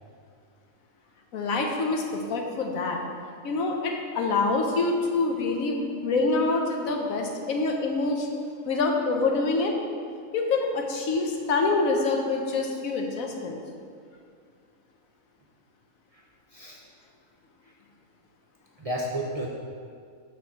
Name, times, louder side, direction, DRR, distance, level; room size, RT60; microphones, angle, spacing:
voice 1, 1.3-3.0 3.4-8.3 8.6-9.7 10.3-13.6, left 3 dB, 90° left, 2 dB, 1.3 m, -26 dB
voice 2, 18.8-19.5, right 1 dB, 40° right, -3 dB, 0.5 m, -31 dB
6.9 x 4.1 x 6.0 m, 2.2 s
omnidirectional pair, 1.4 m